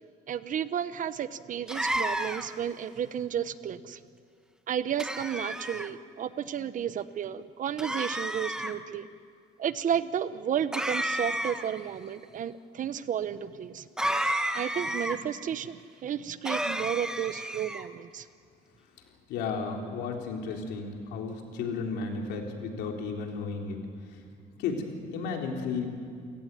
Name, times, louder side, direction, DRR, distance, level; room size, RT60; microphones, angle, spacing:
voice 1, 0.3-4.0 4.7-9.1 9.6-13.8 14.5-18.3, right 9 dB, 50° right, 14 dB, 1.0 m, -32 dB
sound 1, 1.7-2.6 5.0-5.9 7.8-8.7 10.7-11.8 14.0-15.2 16.4-17.9, right 1 dB, 5° right, 1.3 m, -31 dB
voice 2, 19.3-24.2 24.6-25.9, left 4 dB, 85° left, 2 dB, 3.7 m, -33 dB
29.0 x 17.0 x 9.2 m, 2.2 s
cardioid pair, 110°, 17 cm